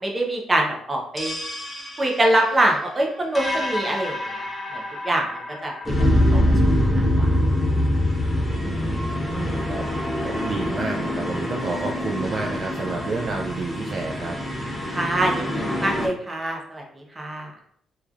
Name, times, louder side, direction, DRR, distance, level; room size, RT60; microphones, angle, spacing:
voice 1, 0.0-1.3 2.0-4.5 4.7-5.3 5.6-5.7 6.0-6.4 7.0-7.3 14.9-17.5, right 1 dB, 20° right, 0 dB, 0.7 m, -24 dB
sound 1, 1.2-16.1, left 1 dB, 15° left, 0.7 m, -25 dB
voice 2, 8.5-9.9 10.2-14.4, right 3 dB, 50° right, 1 dB, 0.3 m, -30 dB
2.9 x 2.4 x 2.4 m, 0.66 s
cardioid pair, 90°, 0 cm